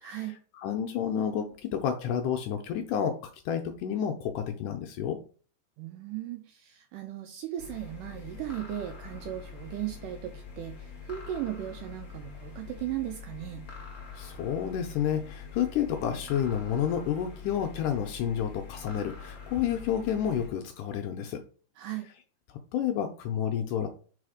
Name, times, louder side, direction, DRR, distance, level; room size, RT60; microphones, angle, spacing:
voice 1, 0.0-0.4 5.8-13.6 21.8-22.1, right 12 dB, 80° right, 5 dB, 2.0 m, -37 dB
voice 2, 0.5-3.2 3.5-5.2 14.2-21.4 22.7-23.9, left 9 dB, 85° left, 5 dB, 1.9 m, -30 dB
sound 1, 7.6-20.5, left 5 dB, 40° left, 1.2 m, -44 dB
4.8 x 4.2 x 4.9 m, 0.40 s
omnidirectional pair, 4.3 m